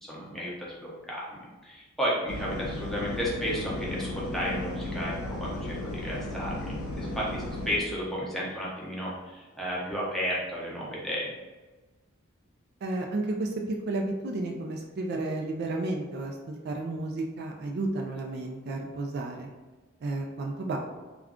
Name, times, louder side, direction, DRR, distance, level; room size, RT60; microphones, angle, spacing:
voice 1, 0.0-11.3, equal, ahead, -6 dB, 0.6 m, -33 dB
sound 1, 2.3-7.8, left 2 dB, 75° left, 0.5 m, -35 dB
voice 2, 12.8-19.5 20.0-20.8, right 2 dB, 50° right, 1 dB, 0.3 m, -32 dB
2.4 x 2.2 x 3.5 m, 1.2 s
head